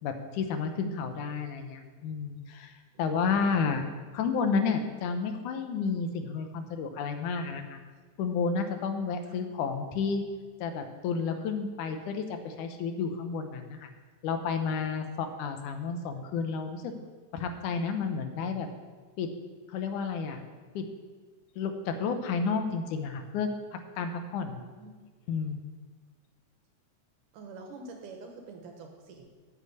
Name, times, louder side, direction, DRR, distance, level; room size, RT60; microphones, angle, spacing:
voice 1, 0.0-2.7 3.0-3.8 4.1-7.8 8.2-10.2 10.6-13.9 14.2-16.9 17.3-18.7 19.2-19.3 19.7-20.4 20.7-20.9 21.6-23.5 24.0-24.6 25.3-25.6, left 5 dB, 80° left, 7 dB, 2.4 m, -31 dB
voice 2, 3.1-3.9 9.3-9.4 24.5-24.9 27.3-29.3, right 3 dB, 85° right, 2 dB, 3.0 m, -46 dB
8.8 x 6.6 x 8.3 m, 1.4 s
omnidirectional pair, 3.6 m